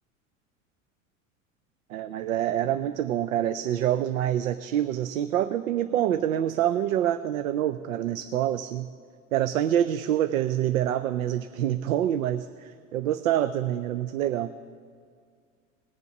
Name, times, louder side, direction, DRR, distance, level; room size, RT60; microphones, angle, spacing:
voice 1, 1.9-8.9 9.3-14.5, right 11 dB, 85° right, 12 dB, 0.5 m, -26 dB
19.5 x 6.9 x 5.9 m, 2.1 s
hypercardioid pair, 85°, 40 cm